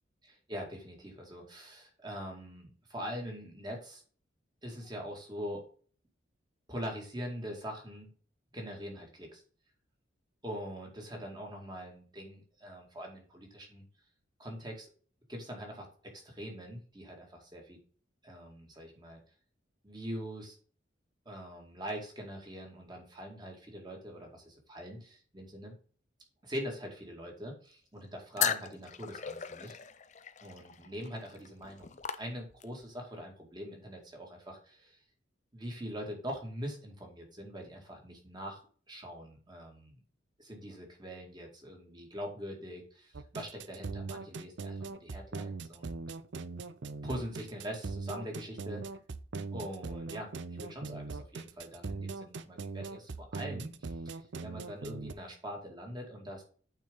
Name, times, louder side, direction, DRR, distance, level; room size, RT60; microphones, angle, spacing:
voice 1, 0.5-4.0 4.6-5.6 6.7-8.1 8.5-9.4 10.4-13.8 14.4-14.9 15.3-15.9 16.1-17.8 18.2-19.2 19.8-20.6 21.3-25.7 26.4-29.8 30.4-35.0 35.5-38.6 38.9-40.0 40.4-46.0 47.0-48.8 49.5-56.4, equal, 20° right, 1 dB, 2.2 m, -43 dB
sound 1, 28.4-32.8, left 9 dB, 35° left, 0.5 m, -37 dB
sound 2, 43.1-55.1, right 3 dB, 65° right, 0.6 m, -40 dB
9.0 x 4.5 x 3.8 m, 0.43 s
head